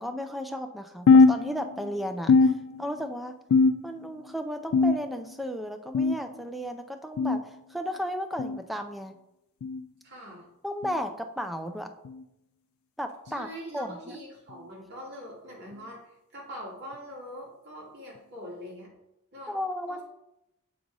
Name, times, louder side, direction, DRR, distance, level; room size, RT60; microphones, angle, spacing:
voice 1, 0.0-3.4 3.8-9.2 10.6-11.9 13.0-13.5 13.7-14.2 19.5-20.0, equal, ahead, 6 dB, 0.4 m, -34 dB
sound 1, 1.1-1.9 2.3-3.1 3.5-4.1 4.7-5.3 5.9-6.3 7.2-7.4 8.4-8.6 9.6-9.8 10.8-11.0 12.0-12.2 13.3-13.4 14.5-14.6 15.7-15.8, left 4 dB, 70° left, 0.3 m, -22 dB
voice 2, 10.0-10.5 13.2-18.9 19.3-19.6 19.9-20.0, equal, 50° right, -4 dB, 2.4 m, -43 dB
7.3 x 3.9 x 4.7 m, 0.88 s
head